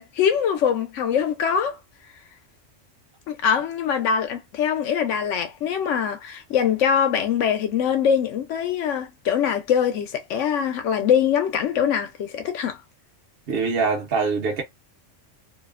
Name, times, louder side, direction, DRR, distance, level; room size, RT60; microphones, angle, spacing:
voice 1, 0.0-1.8 3.3-12.8, left 8 dB, 75° left, 0.9 m, -23 dB
voice 2, 13.5-14.6, right 4 dB, 55° right, 0.8 m, -23 dB
2.7 x 2.0 x 2.3 m
omnidirectional pair, 1.3 m